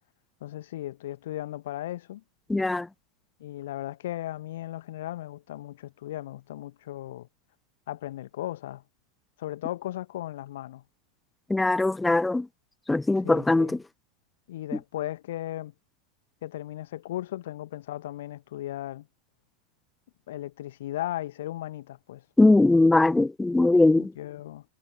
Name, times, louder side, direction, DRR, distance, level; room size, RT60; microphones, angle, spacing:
voice 1, 0.4-2.2 3.4-7.3 7.9-8.8 9.4-10.8 13.2-13.8 14.5-15.7 16.4-19.1 20.3-22.2 23.9-24.6, left 14 dB, 55° left, 1.2 m, -36 dB
voice 2, 2.5-2.9 11.5-12.5 12.9-13.8 22.4-24.1, left 2 dB, 5° left, 0.4 m, -21 dB
figure-of-eight pair, 90°, 0 cm